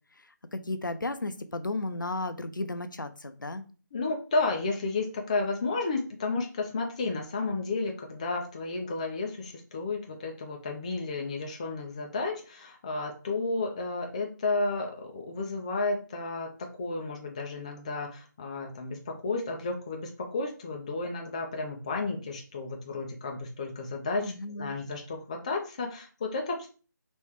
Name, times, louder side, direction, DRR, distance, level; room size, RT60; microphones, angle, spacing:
voice 1, 0.5-3.6 24.2-24.8, left 2 dB, 80° left, 9 dB, 0.5 m, -34 dB
voice 2, 3.9-16.5 16.8-26.7, left 3 dB, 20° left, 2 dB, 0.4 m, -32 dB
3.1 x 3.0 x 3.4 m, 0.37 s
figure-of-eight pair, 155°, 10 cm